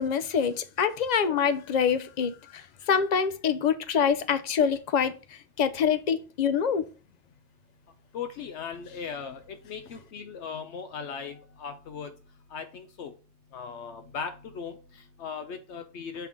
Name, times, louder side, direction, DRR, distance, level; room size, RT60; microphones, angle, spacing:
voice 1, 0.0-5.2 5.6-6.8, left 7 dB, 45° left, 0.6 m, -25 dB
voice 2, 8.1-12.1 12.5-13.1 13.5-16.3, left 6 dB, 80° left, 1.0 m, -38 dB
5.7 x 3.7 x 5.9 m
omnidirectional pair, 1.2 m